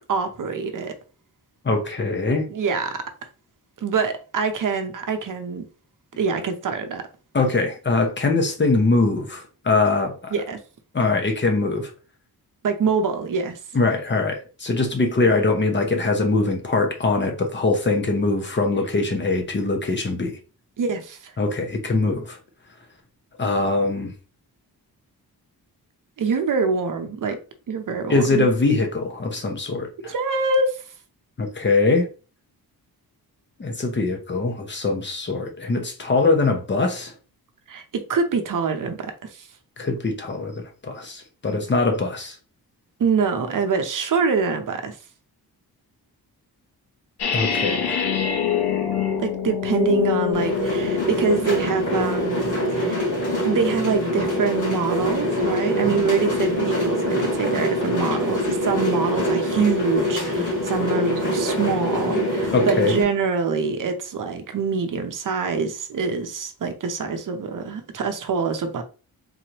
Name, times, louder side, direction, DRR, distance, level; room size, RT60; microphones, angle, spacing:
voice 1, 0.1-0.9 2.5-3.0 3.8-5.7 6.2-7.0 10.3-10.6 12.6-13.6 20.8-21.3 26.2-27.4 27.7-28.5 30.0-30.8 37.7-39.5 43.0-45.0 49.2-53.0 53.4-68.8, right 5 dB, 55° right, 0.7 m, -25 dB
voice 2, 1.6-2.5 7.3-10.3 10.9-11.9 13.7-20.4 21.4-22.4 23.4-24.1 28.1-30.1 31.4-32.1 33.6-37.1 39.8-42.4 47.3-48.0 62.5-63.0, left 3 dB, 30° left, 0.8 m, -22 dB
sound 1, 47.2-51.2, left 8 dB, 85° left, 0.8 m, -24 dB
sound 2, 50.3-63.0, equal, 50° left, 1.7 m, -24 dB
3.9 x 3.1 x 2.9 m
wide cardioid pair, 165°, 38 cm